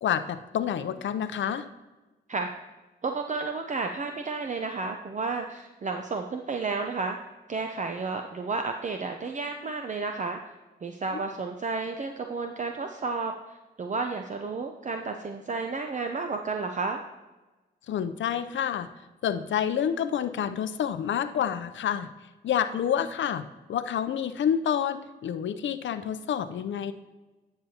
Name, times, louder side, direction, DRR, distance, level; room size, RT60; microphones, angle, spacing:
voice 1, 0.0-1.6 11.1-11.2 17.9-18.9 19.2-22.1 22.4-26.9, left 9 dB, 75° left, 11 dB, 0.6 m, -28 dB
voice 2, 3.0-7.2 7.5-10.4 10.8-17.0, right 4 dB, 40° right, 4 dB, 0.6 m, -32 dB
10.0 x 6.7 x 2.8 m, 1.1 s
cardioid pair, 50°, 20 cm